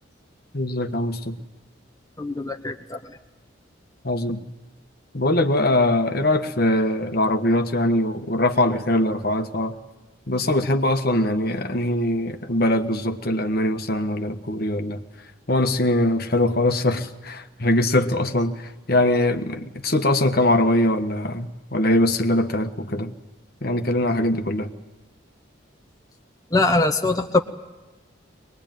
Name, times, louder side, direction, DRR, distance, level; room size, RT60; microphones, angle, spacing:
voice 1, 0.5-1.3 4.0-4.4 5.1-9.7 10.3-15.0 15.5-18.6 18.9-23.1 23.6-24.7, left 1 dB, 50° left, 7 dB, 1.4 m, -22 dB
voice 2, 2.2-3.0 26.5-27.4, left 2 dB, 15° left, 4 dB, 0.8 m, -22 dB
23.0 x 21.0 x 9.2 m, 1.1 s
head